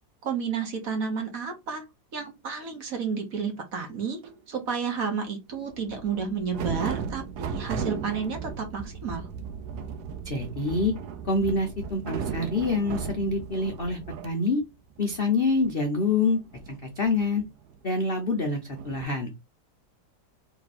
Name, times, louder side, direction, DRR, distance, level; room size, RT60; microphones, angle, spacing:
voice 1, 0.2-1.8 2.1-4.2 4.5-9.3, right 6 dB, 50° right, 3 dB, 1.3 m, -31 dB
sound 1, 4.2-4.4 5.7-14.3 14.6-14.7 14.9-18.2 18.7-19.0, right 6 dB, 70° right, 1.0 m, -36 dB
voice 2, 10.2-10.9 11.2-14.6 15.0-16.4 16.7-17.4 17.8-19.3, left 3 dB, 65° left, 3 dB, 0.5 m, -26 dB
3.4 x 3.2 x 4.1 m, 0.22 s
omnidirectional pair, 2.1 m